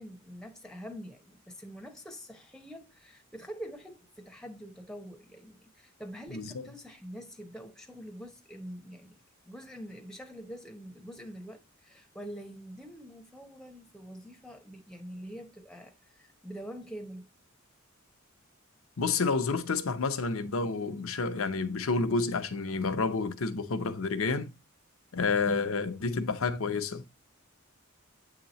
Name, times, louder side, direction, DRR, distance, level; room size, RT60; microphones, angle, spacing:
voice 1, 0.0-17.3, equal, 5° left, 0.8 m, -45 dB
voice 2, 19.0-24.5 25.1-27.0, left 4 dB, 70° left, 0.7 m, -29 dB
8.3 x 2.9 x 4.0 m
head